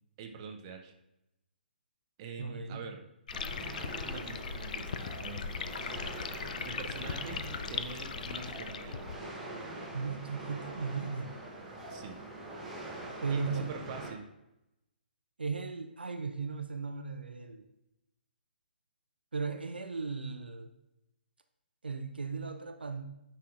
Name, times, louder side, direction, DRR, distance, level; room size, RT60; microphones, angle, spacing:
voice 1, 0.2-0.9 2.2-3.0 4.0-5.5 6.6-7.4 7.7-9.0 11.9-12.2 13.3-14.3, right 5 dB, 30° right, 3 dB, 0.7 m, -44 dB
voice 2, 2.4-2.9 9.9-11.3 13.2-13.7 15.4-17.6 19.3-20.7 21.8-23.1, right 4 dB, 65° right, 7 dB, 0.6 m, -36 dB
sound 1, 3.3-9.2, left 6 dB, 45° left, 0.4 m, -39 dB
sound 2, 3.3-14.1, right 2 dB, 5° right, 0.9 m, -44 dB
9.2 x 5.6 x 2.5 m, 0.90 s
figure-of-eight pair, 130°, 6 cm